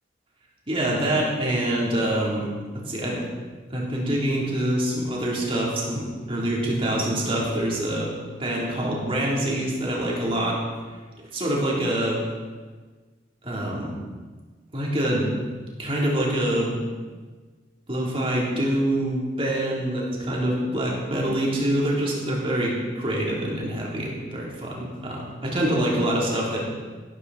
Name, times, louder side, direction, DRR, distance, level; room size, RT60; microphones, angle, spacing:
voice 1, 0.7-3.2 3.7-8.1 8.4-10.6 11.3-12.2 13.4-13.9 14.7-15.3 15.8-16.8 17.9-26.6, right 1 dB, 30° right, -4 dB, 3.7 m, -25 dB
16.5 x 13.5 x 4.3 m, 1.4 s
head